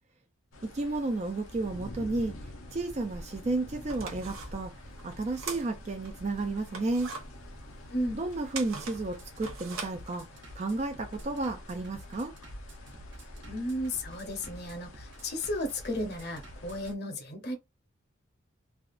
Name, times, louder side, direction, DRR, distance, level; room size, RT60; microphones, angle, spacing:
sound 1, 0.5-16.9, left 1 dB, 85° left, 0.8 m, -47 dB
voice 1, 0.7-2.3 2.7-4.7 5.0-7.1 8.1-10.3 10.6-12.3, right 2 dB, 35° right, 0.4 m, -32 dB
Bass drum, 2.7-16.9, equal, 55° right, 0.9 m, -52 dB
sound 2, 3.3-3.4 3.8-6.1 6.5-10.7, right 4 dB, 85° right, 0.9 m, -42 dB
voice 2, 13.5-17.6, left 1 dB, 50° left, 0.8 m, -34 dB
3.4 x 2.4 x 2.4 m
head